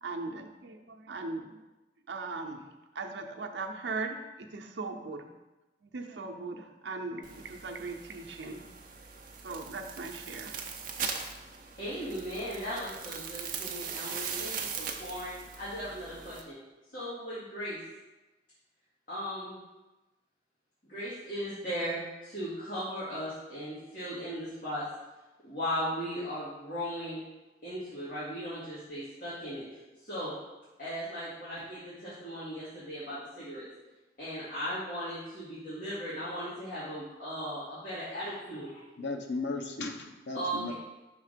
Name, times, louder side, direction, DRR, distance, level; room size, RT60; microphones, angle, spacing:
voice 1, 0.0-1.6 2.1-2.6 2.9-5.3 5.8-8.6 9.4-10.6, right 3 dB, 85° right, 3 dB, 0.7 m, -39 dB
sound 1, 7.2-16.4, right 6 dB, 50° right, 0.6 m, -40 dB
voice 2, 11.8-16.6 16.9-17.8 19.1-19.6 20.9-24.8 25.4-27.2 27.6-29.6 30.1-30.3 30.8-33.7 34.2-38.8 40.3-40.7, equal, 50° left, -11 dB, 2.0 m, -37 dB
voice 3, 39.0-40.7, left 3 dB, 80° left, 3 dB, 0.7 m, -35 dB
5.8 x 3.6 x 5.0 m, 1.1 s
head